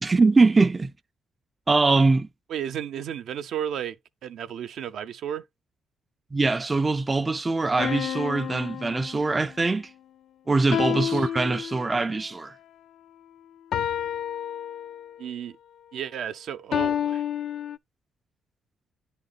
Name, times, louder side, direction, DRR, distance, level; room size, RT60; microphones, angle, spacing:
voice 1, 0.0-0.9 1.7-2.3 6.3-9.9 10.5-12.5, right 3 dB, 25° right, 0.3 m, -22 dB
voice 2, 2.5-4.0 4.2-5.4 10.9-11.3 15.2-15.6 15.9-17.2, right 9 dB, 75° right, 0.5 m, -33 dB
sound 1, 7.8-9.6 10.7-12.2 13.7-15.2 16.7-17.8, left 10 dB, 70° left, 0.3 m, -30 dB
9.7 x 3.7 x 4.0 m
cardioid pair, 90°, 0 cm